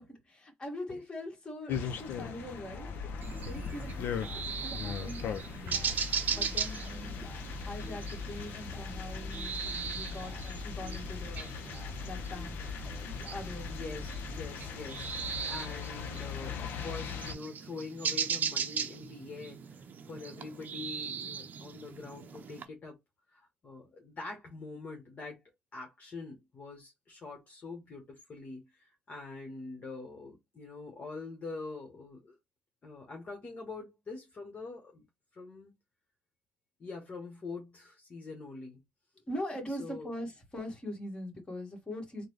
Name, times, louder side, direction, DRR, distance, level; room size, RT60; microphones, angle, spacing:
voice 1, 0.0-4.2 4.5-6.0 6.3-7.3 7.6-11.5 12.0-12.6 13.2-13.7 39.3-42.3, left 1 dB, 25° left, 1.7 m, -42 dB
sound 1, 1.7-17.4, left 7 dB, 80° left, 0.6 m, -40 dB
sound 2, 2.7-14.9, left 2 dB, ahead, 1.0 m, -44 dB
sound 3, 3.2-22.6, right 7 dB, 55° right, 0.5 m, -39 dB
voice 2, 13.7-19.7 20.1-23.0 23.3-25.4 25.7-28.0 28.3-32.4 32.8-35.0 35.3-35.7 36.8-38.8 39.8-40.1, left 3 dB, 45° left, 1.2 m, -44 dB
3.7 x 2.2 x 3.2 m
cardioid pair, 85°, 4 cm